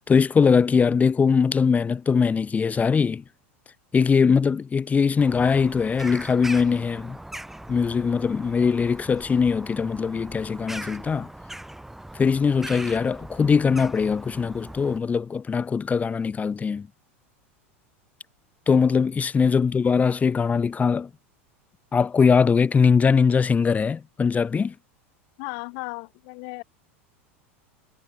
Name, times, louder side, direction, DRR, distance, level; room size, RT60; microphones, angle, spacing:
voice 1, 0.1-3.2 3.9-7.2 7.7-11.3 12.1-16.9 18.7-21.1 21.9-24.7, left 5 dB, 20° left, 1.5 m, -21 dB
Bird vocalization bird call bird song, 5.2-15.0, right 1 dB, 5° right, 1.6 m, -40 dB
voice 2, 25.4-26.6, left 40 dB or more, 60° left, 3.2 m, -35 dB
hypercardioid pair, 95°, 7 cm